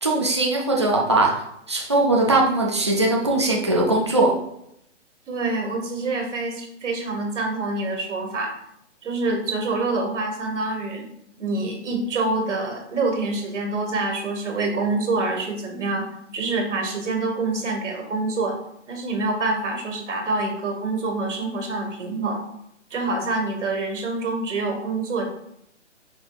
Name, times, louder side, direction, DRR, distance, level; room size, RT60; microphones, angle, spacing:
voice 1, 0.0-1.4 1.7-4.4, right 2 dB, 25° right, -2 dB, 0.3 m, -20 dB
voice 2, 5.3-8.5 9.0-11.1 11.4-16.1 16.3-18.5 18.9-22.4 22.9-25.2, right 3 dB, 75° right, 2 dB, 1.5 m, -26 dB
5.2 x 4.2 x 2.3 m, 0.76 s
hypercardioid pair, 165°, 37 cm